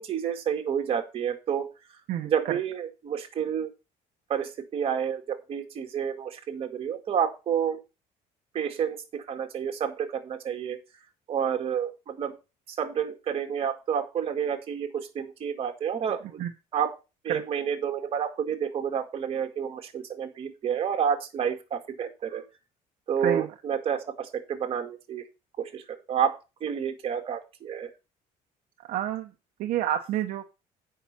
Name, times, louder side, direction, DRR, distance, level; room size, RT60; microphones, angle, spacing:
voice 1, 0.0-1.7 2.2-3.7 4.3-7.8 8.5-10.8 11.3-12.4 12.7-16.4 16.7-17.0 17.2-22.4 23.1-25.2 25.6-25.8 26.1-27.9, right 8 dB, 40° right, 4 dB, 2.0 m, -29 dB
voice 2, 28.9-29.3 29.6-30.5, right 11 dB, 70° right, 4 dB, 1.0 m, -28 dB
8.5 x 5.8 x 5.8 m, 0.28 s
cardioid pair, 150°, 15 cm